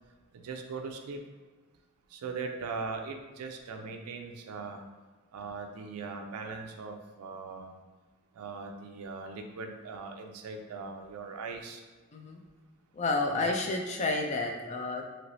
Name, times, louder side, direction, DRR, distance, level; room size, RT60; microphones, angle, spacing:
voice 1, 0.4-1.2 2.1-4.9 5.3-7.8 8.4-11.8 13.3-13.4, right 4 dB, 90° right, 4 dB, 0.4 m, -40 dB
voice 2, 12.9-15.0, left 2 dB, 30° left, 2 dB, 0.3 m, -30 dB
3.1 x 2.8 x 2.6 m, 1.3 s
head